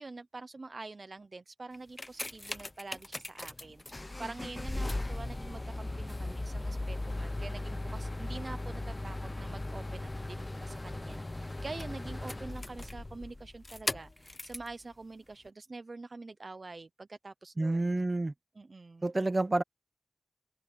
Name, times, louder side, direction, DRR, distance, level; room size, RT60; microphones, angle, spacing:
voice 1, 0.0-18.1 18.6-19.0, right 3 dB, 55° right, 0.7 m, -46 dB
sound 1, 1.7-14.7 15.5-15.6, left 2 dB, 30° left, 0.7 m, -38 dB
voice 2, 17.6-18.3 19.0-19.6, right 2 dB, 40° right, 1.1 m, -29 dB
wide cardioid pair, 55°, 0 cm